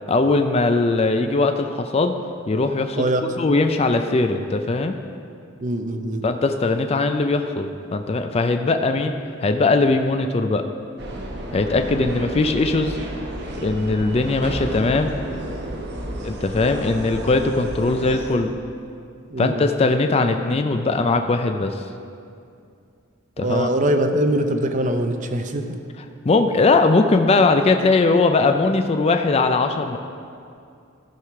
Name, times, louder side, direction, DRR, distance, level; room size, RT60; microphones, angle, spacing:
voice 1, 0.1-2.1 2.5-5.0 6.2-10.6 11.5-13.0 13.6-15.1 16.2-18.5 19.4-21.8 23.4-23.7 26.2-30.0, left 3 dB, 30° left, 6 dB, 0.4 m, -20 dB
voice 2, 5.6-6.2 12.1-12.3 19.3-19.7 23.4-25.6, right 1 dB, 40° right, 6 dB, 0.6 m, -22 dB
sound 1, 11.0-18.4, right 1 dB, 55° right, 1.1 m, -32 dB
13.0 x 4.8 x 5.8 m, 2.4 s
head